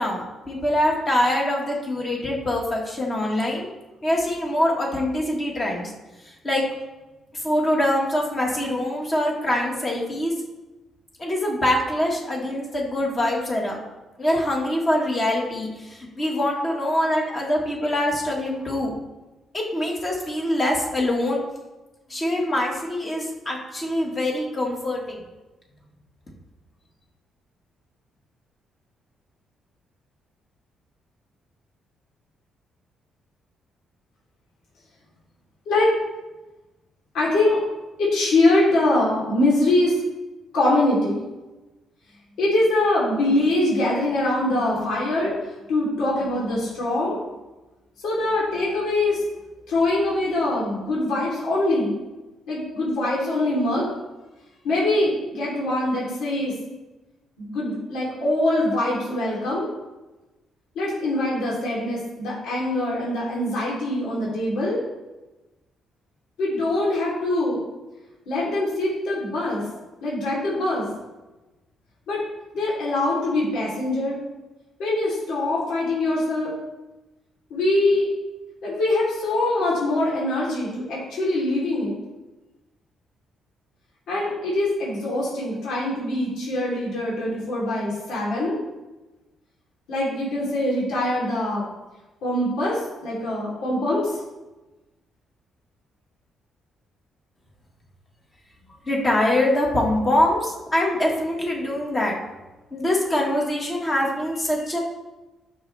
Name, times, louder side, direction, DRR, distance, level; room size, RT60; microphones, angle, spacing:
voice 1, 0.0-3.7 4.0-5.9 6.2-6.6 7.3-10.3 11.2-13.8 14.2-19.0 19.5-21.4 22.1-25.2 98.9-102.2 102.7-104.8, left 1 dB, 25° left, -2 dB, 1.6 m, -24 dB
voice 2, 37.1-37.6 38.0-40.0 40.5-41.2 42.4-45.4 45.7-47.2 48.0-49.2 49.7-51.9 52.5-53.9 54.6-56.5 57.4-59.7 60.8-64.8 66.4-67.6 68.3-69.6 70.0-70.9 72.1-72.2 72.5-74.2 74.8-76.5 77.5-78.1 78.6-82.0 84.1-88.6 89.9-91.7 92.2-94.2, left 1 dB, 80° left, -5 dB, 3.3 m, -23 dB
12.5 x 6.3 x 3.4 m, 1.1 s
cardioid pair, 170°, 0 cm